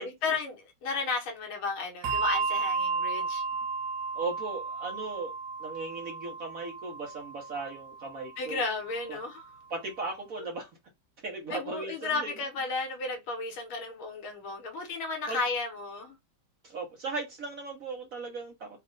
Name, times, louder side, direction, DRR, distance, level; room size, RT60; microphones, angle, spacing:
voice 1, 0.0-3.4 8.4-9.5 11.5-16.2, left 3 dB, 80° left, 2.0 m, -33 dB
Bell, 2.0-8.9, right 4 dB, 85° right, 0.8 m, -33 dB
voice 2, 4.1-5.3 5.6-8.6 9.1-9.2 9.7-10.7 11.2-12.3 15.3-15.4 16.6-18.7, right 3 dB, 55° right, 1.0 m, -37 dB
4.2 x 2.4 x 3.7 m
omnidirectional pair, 2.3 m